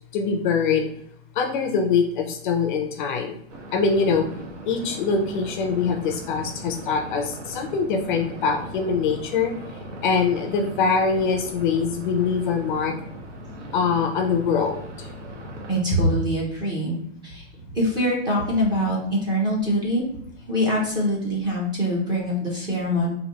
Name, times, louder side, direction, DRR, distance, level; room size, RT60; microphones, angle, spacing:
voice 1, 0.1-0.9 1.4-3.4 3.7-4.2 4.7-9.5 10.0-12.9 13.7-15.1, left 5 dB, 45° left, 4 dB, 0.5 m, -23 dB
sound 1, 3.5-15.8, right 1 dB, 70° right, 1.1 m, -39 dB
voice 2, 15.7-17.0 17.2-17.4 17.7-20.0 20.5-23.1, equal, 10° right, -3 dB, 0.5 m, -23 dB
4.1 x 2.6 x 2.9 m, 0.71 s
supercardioid pair, 160°, 37 cm